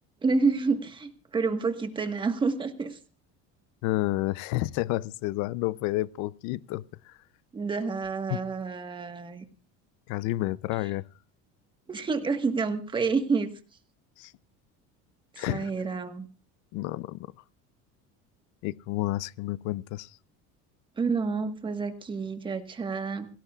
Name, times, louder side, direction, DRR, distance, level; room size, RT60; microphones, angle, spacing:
voice 1, 0.2-3.0 7.5-9.4 11.9-13.5 15.3-16.3 21.0-23.3, right 4 dB, 15° right, 1.4 m, -29 dB
voice 2, 3.8-7.2 8.3-8.4 10.1-11.0 14.2-14.3 15.4-15.7 16.7-17.3 18.6-20.2, left 17 dB, 65° left, 0.7 m, -30 dB
27.0 x 18.0 x 2.4 m
cardioid pair, 175°, 32 cm